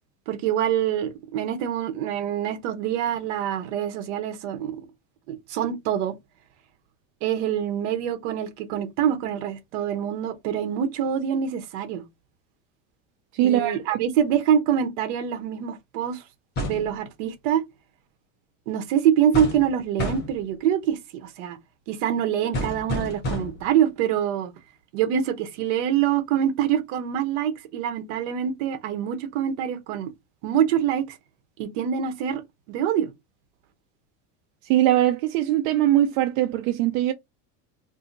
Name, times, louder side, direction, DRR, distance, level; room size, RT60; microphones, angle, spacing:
voice 1, 0.3-4.8 5.3-6.1 7.2-12.0 13.4-16.2 16.6-17.6 18.7-21.6 21.9-24.5 24.9-30.1 30.4-31.1 31.6-32.4 32.7-33.1, right 9 dB, 65° right, 1.0 m, -25 dB
voice 2, 13.3-14.0 34.7-37.1, right 13 dB, 85° right, 0.6 m, -21 dB
sound 1, 16.6-16.9 19.3-19.7 20.0-20.4 22.5-23.7, equal, 25° left, 1.0 m, -29 dB
2.7 x 2.7 x 3.8 m
cardioid pair, 175°, 39 cm